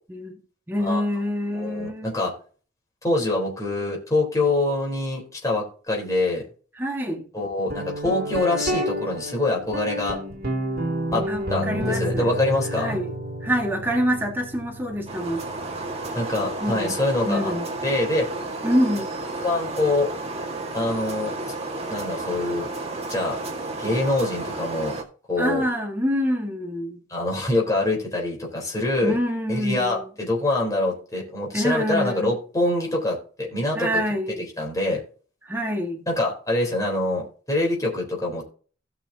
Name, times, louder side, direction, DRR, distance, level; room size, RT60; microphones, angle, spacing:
voice 1, 0.1-0.4 0.7-2.1 6.8-7.2 11.3-12.3 12.8-13.1 13.4-15.4 16.6-16.9 17.2-17.7 18.6-19.1 25.4-27.0 29.0-30.1 31.5-32.3 33.7-34.4 35.4-36.0, equal, 10° right, 1.6 m, -26 dB
voice 2, 1.6-2.3 3.0-6.4 7.3-10.2 11.1-13.0 16.1-17.5 17.8-18.3 19.4-20.1 20.7-21.3 21.9-22.7 23.1-23.4 23.8-25.0 25.3-25.6 27.1-29.2 29.5-34.0 34.6-35.0 36.1-38.4, left 2 dB, 20° left, 3.8 m, -25 dB
Guitar, 7.7-17.2, equal, 55° right, 2.7 m, -31 dB
sound 1, 15.1-25.0, right 2 dB, 35° right, 1.8 m, -32 dB
16.5 x 6.0 x 2.8 m
head